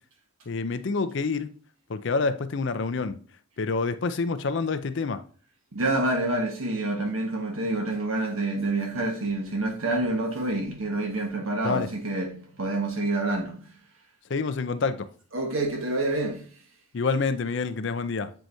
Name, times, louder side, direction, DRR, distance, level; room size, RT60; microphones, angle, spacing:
voice 1, 0.5-1.5 1.9-3.2 3.6-5.2 11.6-11.9 14.3-15.1 16.9-18.3, left 4 dB, 60° left, 0.5 m, -27 dB
voice 2, 5.7-13.6 15.3-16.5, right 2 dB, 85° right, 1.4 m, -27 dB
7.6 x 4.6 x 2.7 m
head